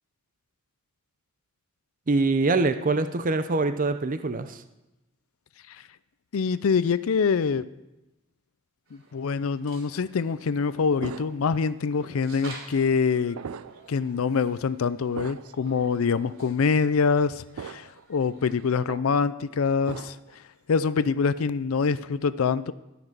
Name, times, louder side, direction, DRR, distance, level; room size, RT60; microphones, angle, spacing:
voice 1, 2.1-4.6, right 3 dB, 40° right, 10 dB, 0.6 m, -24 dB
voice 2, 6.3-7.6 8.9-13.4 13.9-20.4 20.7-22.7, left 5 dB, 80° left, 15 dB, 0.5 m, -25 dB
sound 1, 8.9-18.8, right 2 dB, 65° right, 3.2 m, -51 dB
sound 2, 11.0-11.7 12.3-12.4 13.3-13.9 14.3-14.5 15.1-15.6 16.3-16.4 17.6-18.0 18.4-19.1 19.9-20.3, right 6 dB, 90° right, 0.4 m, -39 dB
18.0 x 6.0 x 6.7 m, 0.96 s
head